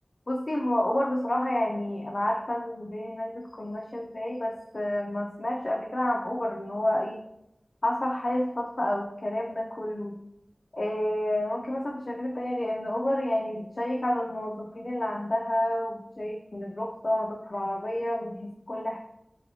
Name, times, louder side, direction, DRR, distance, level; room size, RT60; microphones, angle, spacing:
voice 1, 0.3-7.2 7.8-10.2 10.7-19.0, left 1 dB, 70° left, -1 dB, 0.3 m, -29 dB
3.1 x 2.8 x 2.7 m, 0.83 s
wide cardioid pair, 45°, 0 cm